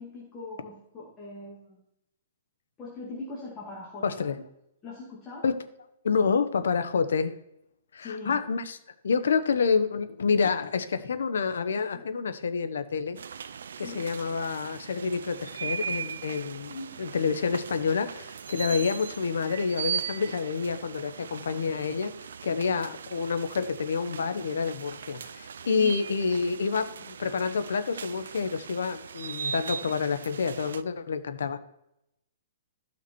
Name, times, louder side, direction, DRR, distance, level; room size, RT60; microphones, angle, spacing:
voice 1, 0.0-1.8 2.8-4.3 4.8-5.4 8.0-8.4 11.9-12.0 13.8-14.1 16.7-16.9 25.8-25.9, left 3 dB, 15° left, -6 dB, 2.3 m, -41 dB
voice 2, 4.0-4.4 5.4-5.6 6.0-7.3 7.9-8.8 9.0-13.2 13.8-22.1 22.4-31.6, left 5 dB, 80° left, 9 dB, 1.1 m, -28 dB
sound 1, 13.2-30.8, right 7 dB, 80° right, 0.5 m, -39 dB
14.0 x 5.7 x 4.6 m, 0.82 s
hypercardioid pair, 170°, 0 cm